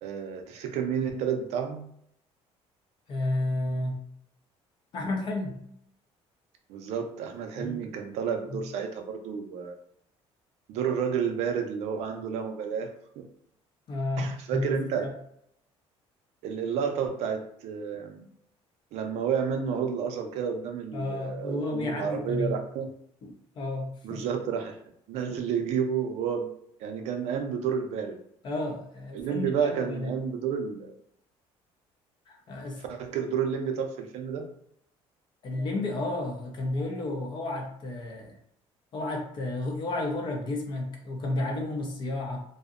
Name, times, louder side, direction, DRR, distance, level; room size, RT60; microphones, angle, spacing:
voice 1, 0.0-1.9 6.7-9.7 10.7-13.2 14.2-15.1 16.4-18.3 18.9-22.9 24.0-24.8 25.1-26.5 26.8-28.2 29.1-30.9 32.9-34.5, right 7 dB, 70° right, 4 dB, 0.4 m, -30 dB
voice 2, 3.1-4.0 4.9-5.6 7.6-7.8 8.5-8.6 13.9-15.1 20.9-22.5 23.2-24.2 28.4-30.1 32.3-32.8 35.4-38.4 38.9-42.4, left 2 dB, 45° left, 2 dB, 0.5 m, -32 dB
2.6 x 2.0 x 2.4 m, 0.71 s
cardioid pair, 155°, 11 cm